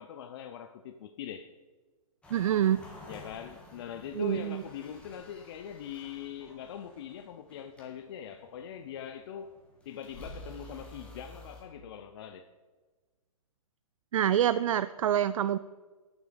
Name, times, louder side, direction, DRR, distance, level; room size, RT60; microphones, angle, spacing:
voice 1, 0.0-1.5 3.1-9.5 9.8-12.5, left 8 dB, 45° left, 0.6 m, -42 dB
sound 1, 2.2-11.6, left 1 dB, 5° left, 1.8 m, -51 dB
voice 2, 2.3-2.8 4.2-4.6 14.1-15.6, right 10 dB, 60° right, 0.4 m, -26 dB
9.3 x 7.3 x 6.8 m
hypercardioid pair, 155°, 19 cm